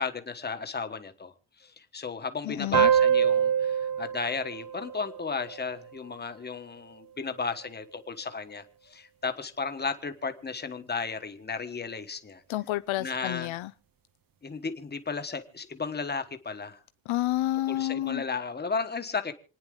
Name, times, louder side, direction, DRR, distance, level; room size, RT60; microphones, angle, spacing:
voice 1, 0.0-1.3 1.6-12.4 13.0-13.5 14.4-16.8 17.7-19.3, left 4 dB, 20° left, 1.2 m, -34 dB
voice 2, 2.4-2.9 12.5-13.7 17.1-18.2, left 15 dB, 85° left, 0.6 m, -29 dB
sound 1, 2.7-5.9, right 8 dB, 45° right, 0.7 m, -25 dB
28.0 x 9.8 x 3.7 m
wide cardioid pair, 175°, 46 cm